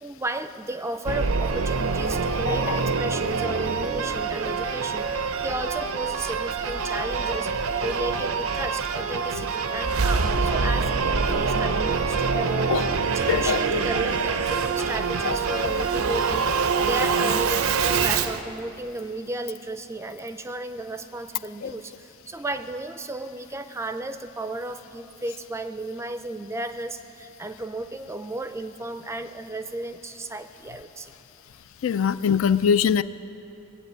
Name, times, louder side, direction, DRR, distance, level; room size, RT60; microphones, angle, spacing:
voice 1, 0.0-12.7 13.0-31.1, right 2 dB, 15° right, 10 dB, 0.4 m, -34 dB
Singing / Musical instrument, 1.1-18.4, right 5 dB, 90° right, 0.7 m, -25 dB
voice 2, 2.4-2.8 12.7-12.8 13.3-13.8 15.2-15.4 15.6-15.7 21.6-21.7 31.8-33.0, left 7 dB, 70° left, 14 dB, 0.4 m, -23 dB
19.0 x 8.1 x 8.6 m, 2.9 s
head